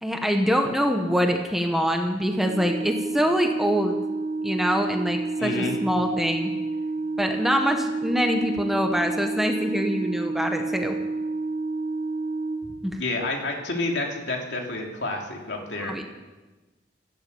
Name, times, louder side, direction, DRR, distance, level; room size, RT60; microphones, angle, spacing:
voice 1, 0.0-4.0 4.4-6.5 7.2-10.9 12.8-13.0 15.8-16.0, equal, ahead, 3 dB, 1.2 m, -24 dB
Organ, 2.4-13.3, right 3 dB, 50° right, 1.8 m, -29 dB
voice 2, 5.4-5.7 13.0-15.9, left 2 dB, 65° left, 1 dB, 3.2 m, -29 dB
16.0 x 12.5 x 7.1 m, 1.2 s
head